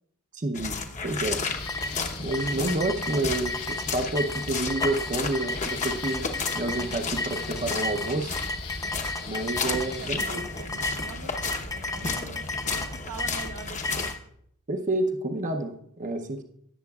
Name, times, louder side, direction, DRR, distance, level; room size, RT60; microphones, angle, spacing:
voice 1, 0.3-0.8 1.0-1.4 2.2-6.3 6.5-8.4 9.3-10.4 14.7-16.4, right 2 dB, 35° right, 5 dB, 0.7 m, -29 dB
sound 1, 0.5-14.2, left 4 dB, 35° left, 0.9 m, -33 dB
sound 2, 1.3-10.1, left 7 dB, 90° left, 1.1 m, -42 dB
sound 3, 1.7-14.2, left 2 dB, 15° left, 0.4 m, -33 dB
voice 2, 9.6-14.1, right 4 dB, 80° right, 5 dB, 1.0 m, -43 dB
17.5 x 7.6 x 2.4 m, 0.68 s
head